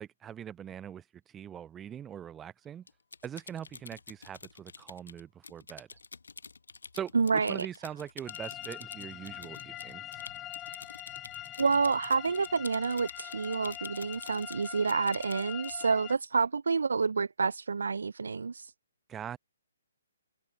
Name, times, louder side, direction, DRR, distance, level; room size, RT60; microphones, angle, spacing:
voice 1, 0.0-2.9 3.2-5.9 6.9-10.2 19.1-19.4, right 9 dB, 15° right, 0.7 m, -42 dB
Typing, 2.9-15.9, left 4 dB, 70° left, 1.2 m, -48 dB
voice 2, 7.1-7.7 11.6-18.7, right 4 dB, 65° right, 0.3 m, -28 dB
sound 1, 8.3-16.1, left 13 dB, 20° left, 0.4 m, -43 dB
figure-of-eight pair, 130°, 0 cm